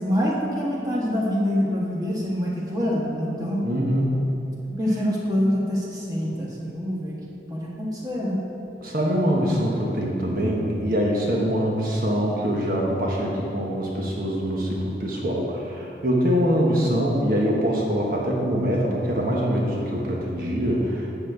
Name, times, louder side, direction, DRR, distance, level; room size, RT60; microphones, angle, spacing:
voice 1, 0.0-3.6 4.8-7.1 7.5-8.4, equal, 20° right, -4 dB, 1.4 m, -25 dB
voice 2, 3.6-4.3 8.8-21.1, equal, 50° right, -3 dB, 1.2 m, -24 dB
12.0 x 4.3 x 8.0 m, 2.8 s
head